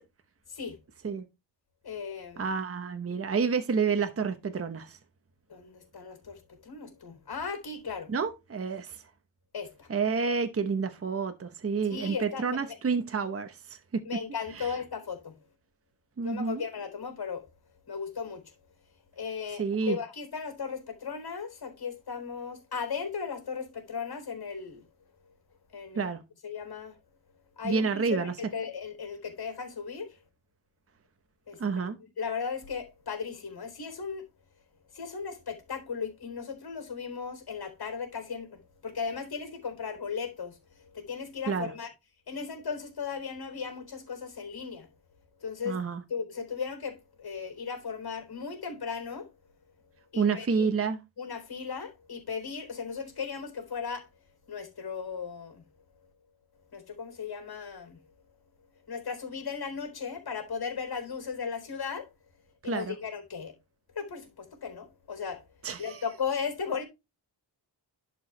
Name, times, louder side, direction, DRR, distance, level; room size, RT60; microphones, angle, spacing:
voice 1, 1.8-2.5 5.5-8.1 9.5-9.9 11.9-12.8 14.1-15.4 16.2-17.5 17.9-18.5 19.2-24.8 25.7-26.1 26.4-27.0 27.6-30.2 31.5-31.6 32.2-34.3 34.9-41.9 42.3-44.9 45.4-45.8 46.1-49.3 50.1-50.7 51.2-54.1 54.5-55.6 56.7-58.0 58.9-62.1 62.6-63.5 64.0-65.4 65.8-66.8, left 6 dB, 55° left, 3.8 m, -36 dB
voice 2, 2.4-5.0 8.1-9.0 9.9-14.0 14.6-14.7 16.2-16.6 19.6-20.0 26.0-26.2 27.6-28.3 31.6-32.0 41.5-41.7 45.6-46.0 50.2-51.0 62.6-62.9 65.6-66.0, right 5 dB, 30° right, 1.0 m, -29 dB
11.0 x 4.7 x 3.3 m
wide cardioid pair, 120°, 44 cm